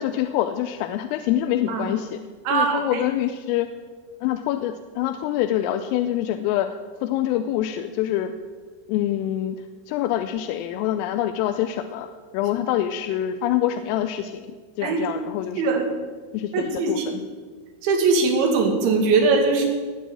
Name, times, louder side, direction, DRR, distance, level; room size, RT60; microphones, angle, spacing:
voice 1, 0.0-2.2 2.5-3.7 4.2-6.7 7.0-8.3 8.9-9.6 9.9-12.1 12.3-15.6 16.3-17.2, left 12 dB, 85° left, 8 dB, 3.3 m, -25 dB
voice 2, 2.5-3.0 14.8-15.0 15.6-15.9 16.5-17.1 17.8-19.7, right 4 dB, 65° right, 2 dB, 4.4 m, -21 dB
20.5 x 7.1 x 8.7 m, 1.5 s
omnidirectional pair, 5.9 m